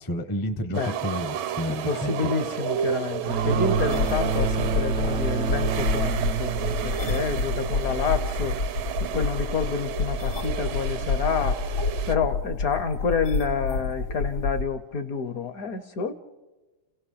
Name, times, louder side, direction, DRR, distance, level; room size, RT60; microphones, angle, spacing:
voice 1, 0.0-2.3 5.8-5.9, left 1 dB, 20° left, 8 dB, 0.5 m, -30 dB
sound 1, 0.7-12.1, right 9 dB, 80° right, 1.7 m, -32 dB
voice 2, 1.7-6.5 6.8-8.6 9.1-11.6 12.1-16.1, left 5 dB, 60° left, 11 dB, 1.1 m, -28 dB
sound 2, 3.2-8.7, right 6 dB, 55° right, 0.8 m, -29 dB
sound 3, 3.7-14.6, left 4 dB, 85° left, 2.2 m, -29 dB
29.5 x 17.0 x 5.7 m, 1.2 s
omnidirectional pair, 2.2 m